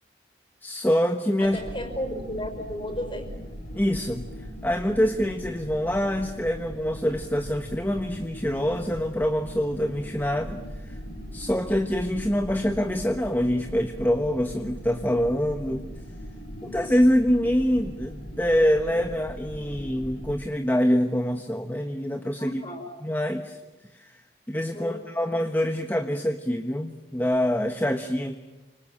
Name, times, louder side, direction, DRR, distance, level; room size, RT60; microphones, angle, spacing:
voice 1, 0.6-1.6 3.7-10.9 11.3-15.8 16.6-22.6 23.0-23.6 23.9-24.2 24.5-28.4, equal, 10° left, 5 dB, 1.3 m, -25 dB
sound 1, 1.4-20.4, equal, 65° left, 6.9 m, -40 dB
voice 2, 1.4-3.3 22.4-22.8 24.7-25.0, equal, 30° left, 7 dB, 5.6 m, -34 dB
30.0 x 26.0 x 7.4 m, 1.1 s
head